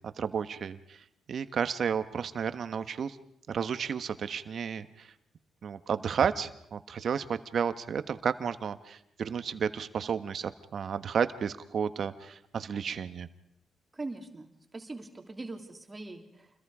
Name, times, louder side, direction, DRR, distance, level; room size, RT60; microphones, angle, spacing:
voice 1, 0.0-3.2 3.5-5.1 5.6-13.3, right 7 dB, 60° right, 11 dB, 1.3 m, -32 dB
voice 2, 13.9-16.6, right 2 dB, 25° right, 4 dB, 3.2 m, -42 dB
29.0 x 22.0 x 5.0 m, 0.75 s
cardioid pair, 75°, 0 cm